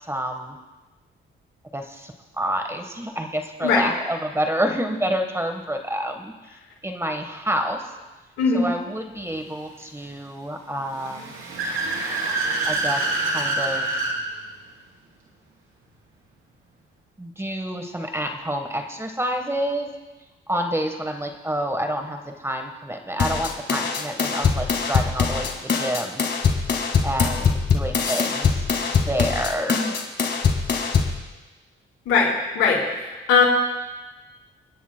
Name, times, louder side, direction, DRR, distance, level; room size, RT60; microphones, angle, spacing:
voice 1, 0.1-0.6 1.7-6.3 6.8-7.9 8.5-11.3 12.6-13.9 17.2-19.9 20.5-26.2 27.0-28.6 29.1-29.9, equal, 10° right, 5 dB, 1.3 m, -28 dB
Car / Accelerating revving vroom, 10.9-14.2, right 2 dB, 90° right, 3.3 m, -26 dB
sound 1, 23.2-31.2, left 5 dB, 55° left, 1.8 m, -23 dB
voice 2, 32.1-32.8 33.3-33.4, left 5 dB, 90° left, -3 dB, 4.4 m, -19 dB
30.0 x 10.0 x 2.2 m, 1.2 s
cardioid pair, 80°, 21 cm